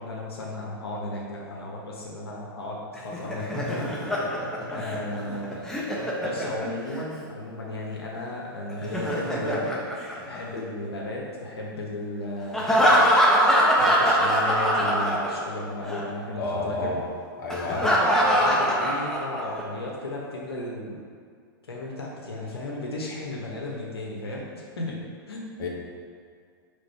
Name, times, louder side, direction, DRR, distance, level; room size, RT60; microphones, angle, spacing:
voice 1, 0.0-5.7 6.2-9.7 10.0-13.0 13.5-17.0 17.7-21.0 21.7-25.0 25.3-25.5, left 2 dB, 90° left, -3 dB, 1.2 m, -35 dB
Laughter, 3.0-7.0 8.7-10.8 12.5-15.6 15.9-16.0 17.5-19.6, equal, 5° left, 1.0 m, -23 dB
voice 2, 16.4-17.0 17.4-17.9 25.6-25.7, left 3 dB, 55° left, -2 dB, 1.2 m, -30 dB
5.0 x 3.5 x 5.7 m, 2.1 s
hypercardioid pair, 120°, 13 cm